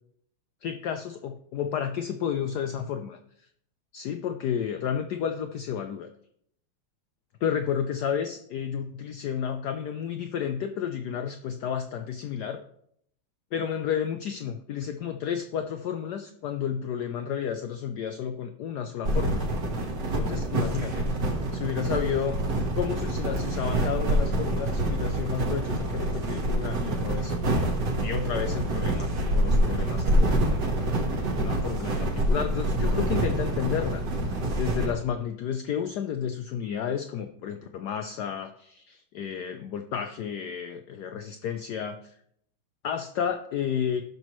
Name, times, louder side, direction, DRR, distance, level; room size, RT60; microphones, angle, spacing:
voice 1, 0.6-3.2 3.9-6.1 7.4-12.6 13.5-19.5 20.2-21.1 21.5-22.4 22.8-27.3 28.0-42.1 42.8-44.0, left 8 dB, 85° left, 7 dB, 0.9 m, -32 dB
sound 1, 19.0-34.9, right 1 dB, 55° right, 1.9 m, -26 dB
16.0 x 6.1 x 3.0 m, 0.71 s
omnidirectional pair, 2.4 m